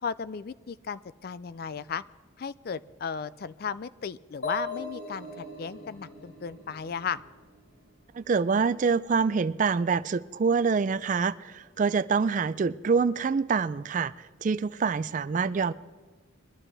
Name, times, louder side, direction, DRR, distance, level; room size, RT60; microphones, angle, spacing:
voice 1, 0.0-2.0 2.4-7.2, left 6 dB, 50° left, 16 dB, 0.4 m, -35 dB
sound 1, 4.4-8.1, left 1 dB, 70° left, 4.7 m, -40 dB
voice 2, 8.1-15.7, right 5 dB, 40° right, 15 dB, 0.3 m, -26 dB
22.5 x 12.0 x 3.4 m, 1.4 s
head